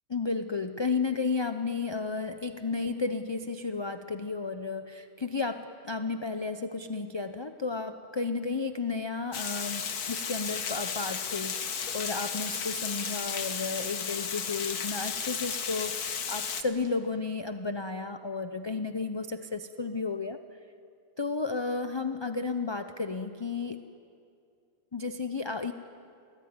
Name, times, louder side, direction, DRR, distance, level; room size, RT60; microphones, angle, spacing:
voice 1, 0.1-20.4 21.2-23.9 24.9-25.7, left 4 dB, 25° left, 8 dB, 0.6 m, -33 dB
Water, 9.3-16.6, left 6 dB, 85° left, 1.8 m, -34 dB
29.0 x 20.0 x 9.6 m, 2.5 s
omnidirectional pair, 1.6 m